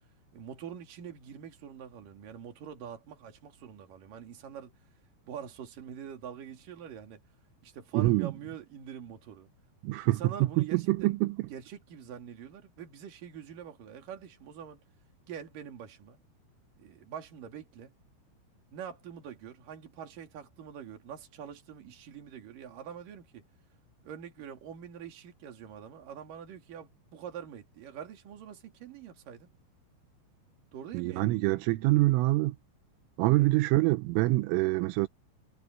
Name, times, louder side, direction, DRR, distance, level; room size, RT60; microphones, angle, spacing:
voice 1, 0.3-4.7 5.3-7.2 7.6-9.5 10.1-11.2 11.5-14.8 15.3-16.2 16.8-17.9 18.7-23.5 24.0-29.5 30.7-31.4 33.4-33.5, right 8 dB, 50° right, 3.7 m, -45 dB
voice 2, 7.9-8.3 9.8-11.5 30.9-32.6 33.2-35.1, right 19 dB, 85° right, 3.3 m, -25 dB
omnidirectional pair, 5.8 m